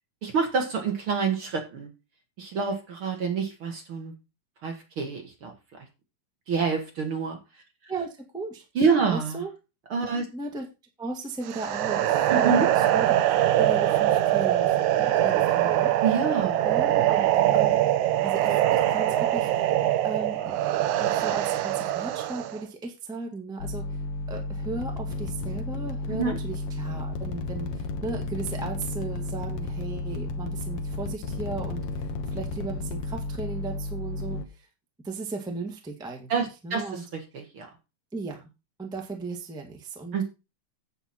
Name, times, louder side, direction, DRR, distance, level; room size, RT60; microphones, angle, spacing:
voice 1, 0.2-1.9 2.4-4.1 4.6-5.5 6.5-7.4 8.8-9.4 9.9-10.3 12.3-12.7 16.0-16.6 26.1-26.4 36.3-36.9 37.1-37.7 40.1-40.2, right 5 dB, 45° right, 3 dB, 2.1 m, -27 dB
voice 2, 7.9-8.6 9.1-9.5 10.3-10.7 11.0-15.9 16.6-17.3 17.5-17.8 18.2-19.7 20.0-20.6 21.0-23.8 24.3-34.7 35.0-36.3 36.6-37.0 38.1-38.5 38.8-40.2, right 3 dB, ahead, 2 dB, 1.1 m, -36 dB
sound 1, 11.5-22.6, right 13 dB, 75° right, 2.1 m, -23 dB
sound 2, 23.6-34.4, left 3 dB, 60° left, 1.6 m, -33 dB
9.7 x 8.1 x 4.4 m, 0.28 s
omnidirectional pair, 3.8 m